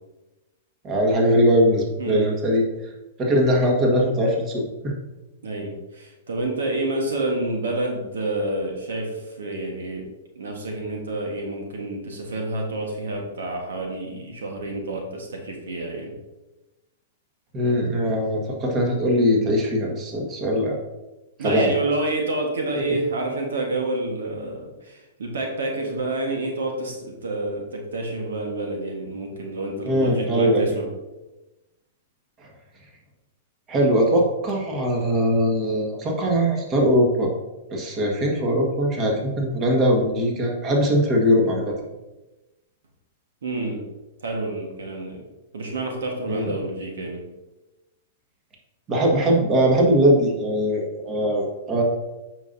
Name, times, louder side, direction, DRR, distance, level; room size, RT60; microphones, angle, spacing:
voice 1, 0.8-2.6 3.2-4.9 17.5-20.8 21.4-21.7 29.8-30.6 32.4-32.5 33.7-37.3 37.7-41.7 46.3-46.5 48.9-51.8, equal, 30° right, 0 dB, 1.7 m, -21 dB
voice 2, 2.0-2.3 5.4-10.1 10.3-16.1 21.4-30.9 43.4-43.8 44.2-45.2 45.5-47.2, right 2 dB, 80° right, 1 dB, 1.4 m, -28 dB
8.1 x 5.7 x 2.7 m, 1.1 s
hypercardioid pair, 120°, 0 cm